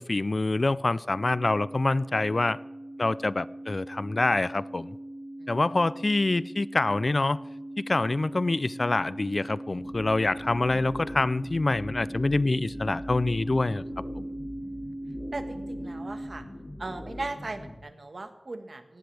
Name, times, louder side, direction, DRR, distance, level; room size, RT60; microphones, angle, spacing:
voice 1, 0.0-2.6 3.0-5.0 5.5-7.4 7.8-13.8, left 2 dB, 55° left, 0.4 m, -26 dB
sound 1, 1.1-16.3, right 1 dB, 55° right, 1.5 m, -40 dB
sound 2, 9.8-17.8, left 1 dB, 35° left, 2.4 m, -42 dB
voice 2, 14.6-14.9 15.3-16.4 16.8-19.0, right 2 dB, 75° right, 1.5 m, -38 dB
18.0 x 17.0 x 3.4 m
wide cardioid pair, 65°, 0 cm